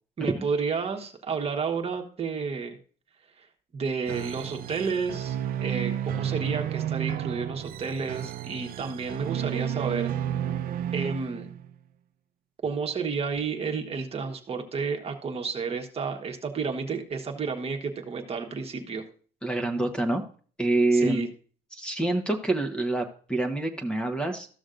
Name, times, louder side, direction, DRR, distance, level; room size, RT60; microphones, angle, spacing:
voice 1, 0.2-2.8 3.4-3.5 3.7-10.1 10.9-11.5 12.6-19.0 20.9-21.3, right 5 dB, 35° right, 4 dB, 1.3 m, -31 dB
sound 1, 4.1-11.7, right 10 dB, 60° right, 0.6 m, -32 dB
voice 2, 19.4-20.2 20.6-21.2 21.7-24.5, right 2 dB, 5° left, 4 dB, 1.1 m, -26 dB
14.0 x 6.2 x 2.5 m, 0.41 s
cardioid pair, 110°, 17 cm